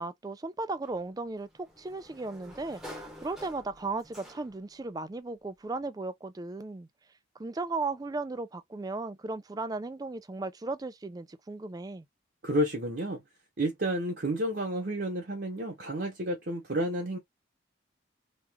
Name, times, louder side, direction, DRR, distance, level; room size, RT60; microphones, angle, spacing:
voice 1, 0.0-2.8 3.2-6.9 7.4-12.0, right 3 dB, 20° right, 0.3 m, -36 dB
Sliding door, 0.8-4.8, equal, 5° right, 0.9 m, -48 dB
voice 2, 12.4-13.2 13.6-17.2, right 1 dB, 50° right, 0.8 m, -30 dB
3.0 x 2.4 x 3.4 m
head